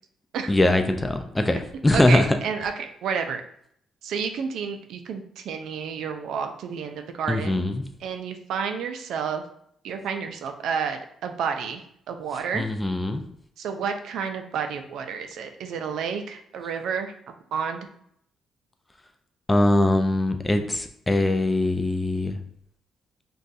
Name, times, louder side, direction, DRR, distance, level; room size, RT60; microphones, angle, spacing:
voice 1, 0.5-2.2 7.3-7.8 12.5-13.2 19.5-22.4, left 1 dB, 15° left, 6 dB, 0.3 m, -22 dB
voice 2, 1.9-3.4 4.0-7.7 8.0-9.4 9.8-12.6 13.6-17.1 17.5-17.9, right 6 dB, 80° right, 6 dB, 0.4 m, -30 dB
2.5 x 2.3 x 3.9 m, 0.70 s
cardioid pair, 90°, 0 cm